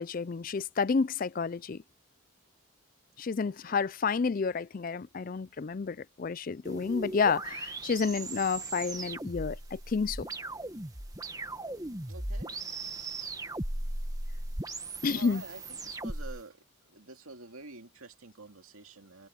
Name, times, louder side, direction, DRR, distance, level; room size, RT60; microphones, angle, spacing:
voice 1, 0.0-1.8 3.2-10.3 15.0-15.4, left 5 dB, 40° left, 0.4 m, -30 dB
voice 2, 3.4-3.8 12.1-12.6 15.1-19.3, right 3 dB, 90° right, 2.4 m, -48 dB
sound 1, 6.7-16.4, right 2 dB, 15° right, 1.7 m, -38 dB
head